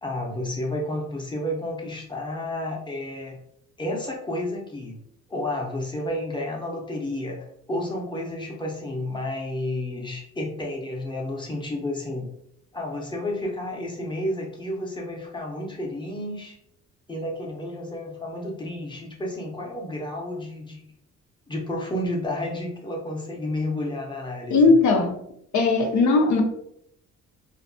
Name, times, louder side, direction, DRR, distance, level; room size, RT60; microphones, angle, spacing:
voice 1, 0.0-3.4 3.8-5.0 5.3-12.2 12.7-16.6 17.1-20.8 21.5-24.7, left 1 dB, 15° left, -1 dB, 0.7 m, -31 dB
voice 2, 24.5-25.1 25.5-26.4, left 3 dB, 70° left, 2 dB, 0.6 m, -18 dB
2.6 x 2.2 x 2.6 m, 0.73 s
cardioid pair, 90°, 30 cm